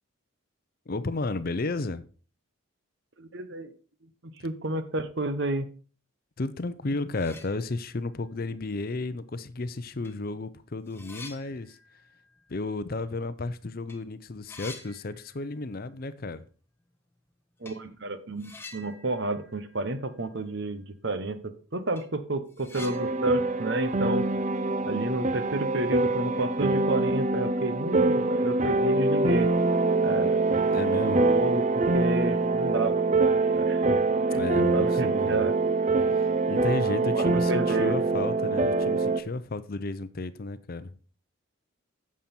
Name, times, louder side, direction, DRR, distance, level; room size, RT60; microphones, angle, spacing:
voice 1, 0.9-2.0 6.4-11.8 12.5-16.5 30.1-30.3 30.7-31.2 34.3-35.5 36.1-40.9, left 3 dB, 45° left, 0.6 m, -33 dB
voice 2, 3.2-3.7 4.2-5.7 17.6-24.3 24.8-29.5 30.0-30.4 31.0-33.1 33.5-34.0 34.7-35.5 37.1-38.0, right 2 dB, 55° right, 1.0 m, -30 dB
sound 1, 6.7-6.8 7.1-8.1 8.5-8.6 9.5-9.6 10.0-13.5 13.7-14.0 14.2-16.1 17.6-17.9 18.4-20.5 20.8-20.9 21.3-21.4 21.7-25.0, left 3 dB, 10° left, 1.2 m, -49 dB
sound 2, 22.7-39.2, right 3 dB, 35° right, 0.5 m, -24 dB
9.1 x 7.5 x 4.4 m
head